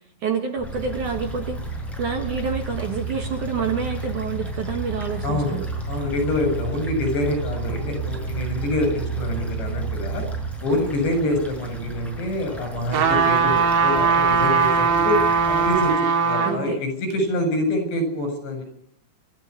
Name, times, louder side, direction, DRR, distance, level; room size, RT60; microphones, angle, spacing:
voice 1, 0.2-1.6 2.0-5.7 16.4-16.8, right 6 dB, 55° right, 5 dB, 2.5 m, -28 dB
sound 1, 0.6-10.5, right 4 dB, 30° left, 5.6 m, -31 dB
sound 2, 0.6-15.9, equal, ahead, 6.2 m, -37 dB
voice 2, 5.2-5.6 5.9-10.2 10.6-15.2 15.5-18.6, left 1 dB, 75° left, 7 dB, 9.6 m, -26 dB
sound 3, 12.9-16.6 17.1-17.2, right 5 dB, 80° right, 4.4 m, -19 dB
29.5 x 14.0 x 9.8 m, 0.74 s
omnidirectional pair, 5.1 m